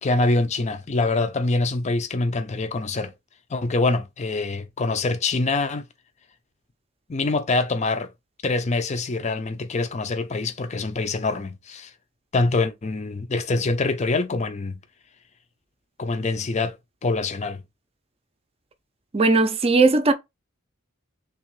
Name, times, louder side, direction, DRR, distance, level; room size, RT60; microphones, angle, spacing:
voice 1, 0.0-3.1 3.5-5.8 7.1-8.1 8.4-11.9 12.3-14.8 16.0-16.8 17.0-17.6, left 3 dB, 30° left, 0.5 m, -24 dB
voice 2, 19.1-20.1, right 3 dB, 30° right, 0.5 m, -18 dB
3.6 x 3.0 x 3.1 m
head